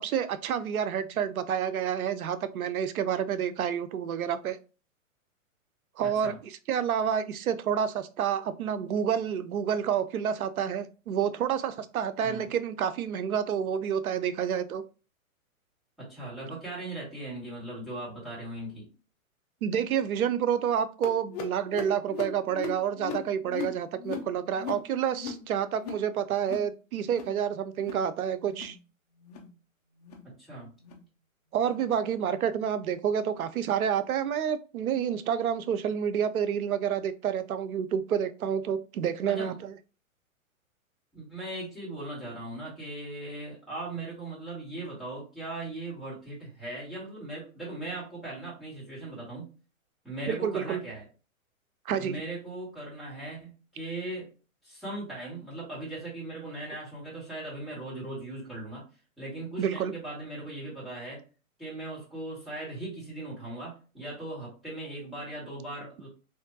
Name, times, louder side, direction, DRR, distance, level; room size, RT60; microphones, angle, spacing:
voice 1, 0.0-4.6 6.0-14.8 19.6-28.8 31.5-39.7 50.3-50.8 51.9-52.1 59.6-59.9, right 8 dB, 85° right, 11 dB, 0.6 m, -29 dB
voice 2, 6.0-6.4 12.2-12.5 16.0-18.9 30.2-30.7 39.2-39.5 41.1-49.5 50.0-51.1 52.0-54.3 54.6-58.8 59.2-61.2 61.6-66.1, right 2 dB, ahead, -7 dB, 1.6 m, -39 dB
sound 1, 21.0-26.1 26.3-26.7 27.0-27.4 27.7-28.1 28.4-28.8 29.2-29.5 30.0-30.3 30.8-31.0 31.6-31.8 32.5-32.6 33.3-33.4 34.2-34.3, left 7 dB, 30° left, 0.5 m, -39 dB
3.5 x 2.6 x 2.6 m, 0.34 s
hypercardioid pair, 130°, 42 cm